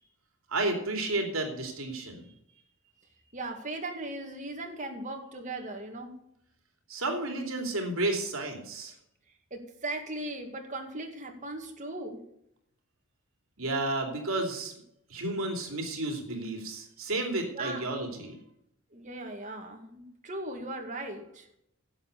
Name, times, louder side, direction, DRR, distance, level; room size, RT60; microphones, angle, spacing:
voice 1, 0.5-2.2 6.9-8.9 13.6-14.7 15.1-18.4, right 2 dB, 75° right, 3 dB, 2.9 m, -32 dB
voice 2, 3.3-6.1 9.5-12.2 17.5-18.0 18.9-21.5, right 2 dB, 35° right, 3 dB, 2.1 m, -38 dB
11.0 x 7.9 x 6.8 m, 0.76 s
head